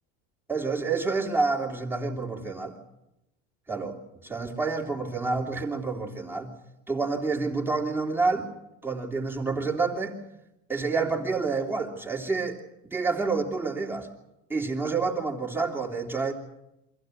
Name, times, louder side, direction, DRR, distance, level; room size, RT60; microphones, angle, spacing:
voice 1, 0.5-2.8 3.7-4.0 4.2-6.5 6.9-8.5 8.8-10.2 10.7-14.1 14.5-16.3, right 4 dB, 5° right, -1 dB, 3.0 m, -28 dB
25.0 x 15.5 x 9.7 m, 0.89 s
supercardioid pair, 145°, 34 cm